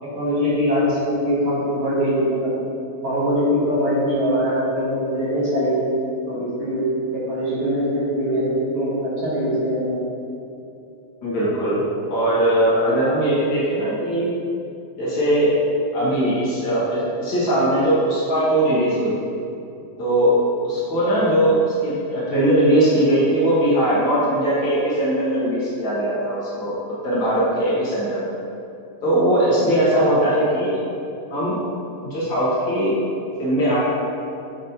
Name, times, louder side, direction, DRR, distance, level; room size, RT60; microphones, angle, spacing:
voice 1, 0.0-2.5 3.0-5.8 6.3-6.8 7.1-10.0 21.0-21.1 29.9-30.2, equal, 50° right, -8 dB, 2.0 m, -22 dB
voice 2, 11.2-11.8 12.1-14.3 15.0-15.5 15.9-19.3 20.0-20.3 20.6-28.3 29.0-30.8 31.3-31.6 32.0-32.9 33.4-33.8, right 1 dB, 50° left, -9 dB, 1.4 m, -20 dB
8.3 x 5.1 x 2.9 m, 2.7 s
omnidirectional pair, 4.2 m